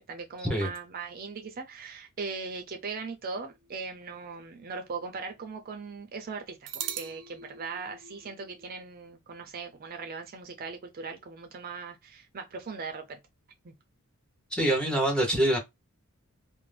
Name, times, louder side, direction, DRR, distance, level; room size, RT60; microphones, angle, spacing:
voice 1, 0.0-13.2 13.6-13.7, right 4 dB, 40° right, 0.5 m, -39 dB
sound 1, 3.6-5.0 5.3-5.4 6.7-8.8, right 8 dB, 90° right, 0.5 m, -41 dB
voice 2, 14.5-15.6, right 1 dB, 5° left, 0.8 m, -25 dB
2.5 x 2.0 x 3.2 m
head